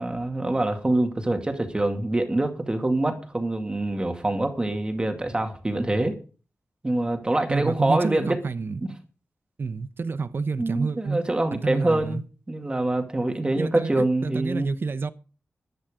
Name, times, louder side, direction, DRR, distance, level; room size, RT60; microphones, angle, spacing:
voice 1, 0.0-6.2 6.8-8.4 8.8-8.9 10.6-12.2 12.5-14.7, right 2 dB, 20° right, 2.3 m, -25 dB
voice 2, 7.5-8.8 9.6-11.2 11.5-12.2 13.6-15.1, right 4 dB, 55° right, 0.9 m, -29 dB
15.0 x 10.5 x 5.1 m
wide cardioid pair, 135°, 5 cm